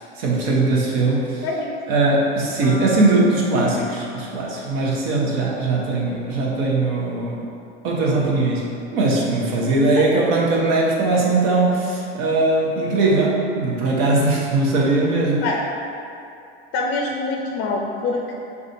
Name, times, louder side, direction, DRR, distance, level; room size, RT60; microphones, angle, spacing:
voice 1, 0.0-1.4 1.9-7.5 7.8-15.4, right 2 dB, 60° right, -3 dB, 1.0 m, -20 dB
voice 2, 1.4-1.8 10.0-10.1 15.4-15.6 16.7-18.3, left 3 dB, 45° left, 0 dB, 0.5 m, -24 dB
sound 1, 2.6-6.7, left 5 dB, 15° right, 1.3 m, -36 dB
6.3 x 2.4 x 2.6 m, 2.6 s
hypercardioid pair, 85°, 31 cm